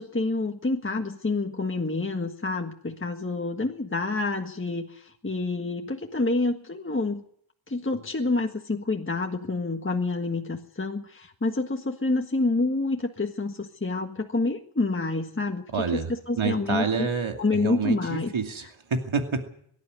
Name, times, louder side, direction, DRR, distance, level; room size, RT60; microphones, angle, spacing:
voice 1, 0.0-7.2 7.7-15.6 15.9-17.1 17.4-18.3, left 3 dB, 25° left, 3 dB, 1.6 m, -28 dB
voice 2, 15.7-19.6, right 5 dB, 75° right, 4 dB, 2.6 m, -28 dB
23.0 x 12.0 x 9.7 m, 0.65 s
wide cardioid pair, 90°, 48 cm